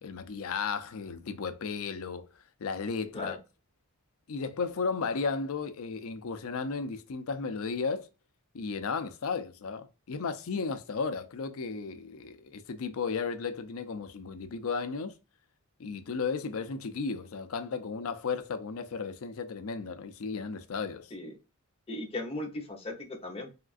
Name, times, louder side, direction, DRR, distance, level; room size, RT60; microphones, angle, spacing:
voice 1, 0.0-2.3 2.6-3.4 4.3-8.1 8.5-15.1 15.8-21.1, left 5 dB, 65° left, 0.5 m, -34 dB
voice 2, 21.9-23.5, left 2 dB, 25° left, 0.9 m, -37 dB
3.6 x 2.4 x 2.4 m
head